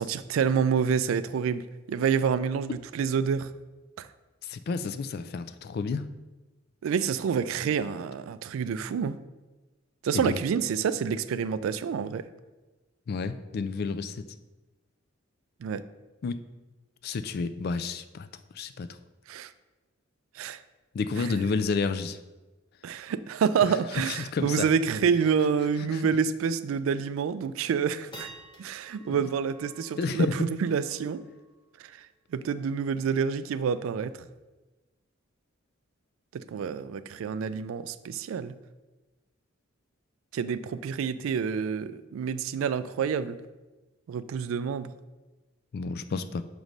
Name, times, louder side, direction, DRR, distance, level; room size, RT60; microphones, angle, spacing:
voice 1, 0.0-3.5 4.0-4.1 6.8-9.2 10.0-12.2 15.6-15.8 19.3-19.5 20.4-20.6 21.2-21.3 22.8-28.3 28.6-31.3 32.0-32.1 32.3-34.1 36.3-38.5 40.3-43.4 44.1-44.9, right 6 dB, 85° right, 14 dB, 0.3 m, -28 dB
voice 2, 4.4-6.0 10.1-10.4 13.1-14.2 16.2-16.4 17.0-18.3 18.6-18.9 20.9-22.2 24.1-24.7 25.9-26.0 29.1-29.3 30.0-30.3 45.7-46.4, left 4 dB, 50° left, 11 dB, 0.3 m, -30 dB
sound 1, 27.9-34.2, right 2 dB, 25° left, 1.1 m, -52 dB
6.4 x 3.0 x 5.2 m, 1.1 s
head